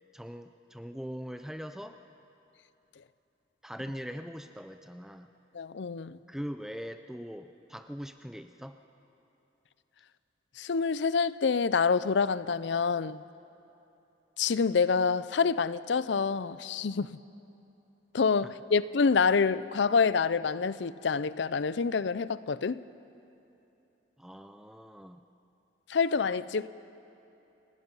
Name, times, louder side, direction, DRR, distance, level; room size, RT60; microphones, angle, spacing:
voice 1, 0.1-2.0 3.6-5.3 6.3-8.8 18.4-18.5 24.2-25.2, equal, 5° right, 0.5 m, -41 dB
voice 2, 5.5-6.2 10.6-13.2 14.4-17.2 18.1-22.8 25.9-26.7, left 5 dB, 75° left, 0.5 m, -27 dB
29.0 x 17.5 x 5.6 m
head